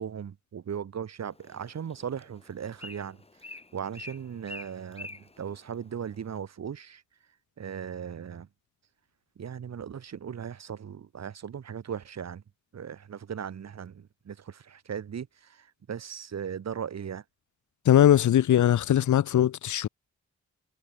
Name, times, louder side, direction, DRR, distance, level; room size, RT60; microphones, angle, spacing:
voice 1, 0.0-7.0 7.6-8.5 9.4-12.4 12.7-17.2, right 8 dB, 60° right, 2.4 m, -38 dB
Bird, 1.3-6.4, left 3 dB, 20° left, 6.5 m, -48 dB
voice 2, 17.8-19.9, left 11 dB, 75° left, 0.8 m, -20 dB
wide cardioid pair, 155°, 30 cm